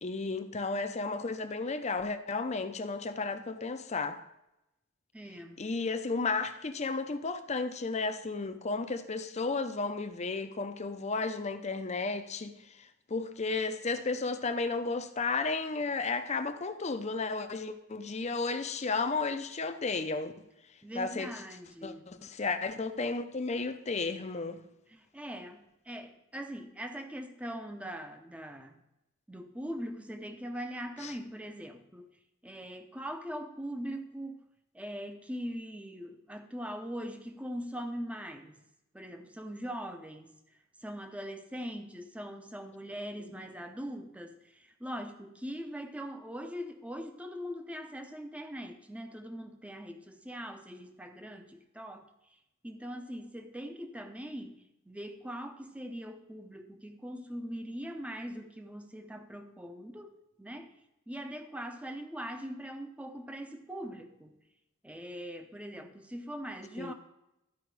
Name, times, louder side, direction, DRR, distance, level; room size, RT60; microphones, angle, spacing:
voice 1, 0.0-4.2 5.6-12.6 13.1-20.3 20.9-21.3 21.8-24.6 31.0-31.1 66.8-66.9, left 3 dB, 30° left, 0.6 m, -33 dB
voice 2, 5.1-5.6 20.8-22.1 24.9-28.8 29.3-32.2 32.4-34.4 34.7-38.6 38.9-52.1 52.6-60.8 61.1-64.4 64.8-66.9, equal, 5° right, 0.7 m, -41 dB
12.5 x 5.0 x 4.7 m
head